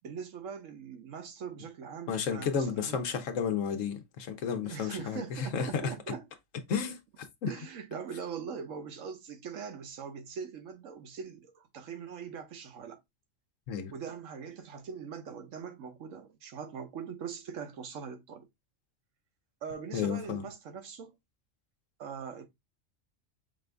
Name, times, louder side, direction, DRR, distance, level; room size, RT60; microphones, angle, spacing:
voice 1, 0.0-3.0 4.6-6.2 7.5-13.0 13.9-18.5 19.6-21.2 22.0-22.5, right 6 dB, 75° right, 1.2 m, -42 dB
voice 2, 2.1-5.9 6.7-7.0 7.4-7.5 13.7-13.9 19.9-20.4, left 6 dB, 80° left, 1.2 m, -32 dB
5.2 x 2.5 x 3.3 m
omnidirectional pair, 1.3 m